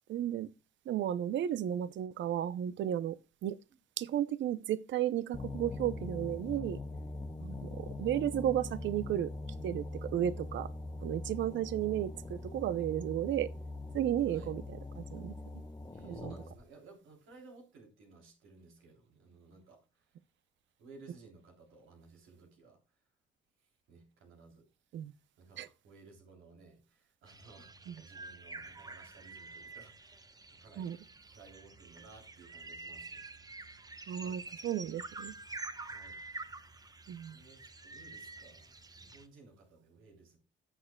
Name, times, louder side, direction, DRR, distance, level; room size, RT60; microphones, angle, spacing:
voice 1, 0.1-0.5 0.9-3.6 4.0-6.8 7.4-9.3 9.6-10.7 11.0-13.5 13.9-15.3 16.0-16.3 24.9-25.1 25.6-25.7 27.9-28.0 30.8-31.0 34.1-35.3 37.1-37.4, right 11 dB, 70° right, 0.6 m, -34 dB
sound 1, 5.3-16.6, left 2 dB, 20° left, 1.1 m, -42 dB
voice 2, 15.9-19.8 20.8-22.8 23.9-24.7 25.4-30.2 30.5-31.0 31.3-33.2 34.2-34.4 35.9-36.2 37.3-40.4, right 3 dB, 85° right, 3.2 m, -57 dB
sound 2, 27.3-39.3, right 3 dB, 20° right, 0.9 m, -48 dB
15.5 x 6.7 x 2.2 m
cardioid pair, 90°, 20 cm